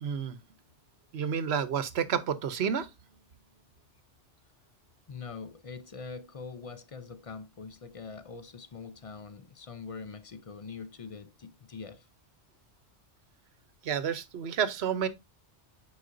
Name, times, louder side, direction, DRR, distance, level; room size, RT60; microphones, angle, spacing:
voice 1, 0.0-0.4 1.1-2.9 13.8-15.1, right 7 dB, 65° right, 1.0 m, -30 dB
voice 2, 5.1-12.1, left 5 dB, 45° left, 0.4 m, -43 dB
9.3 x 4.8 x 2.6 m
omnidirectional pair, 1.2 m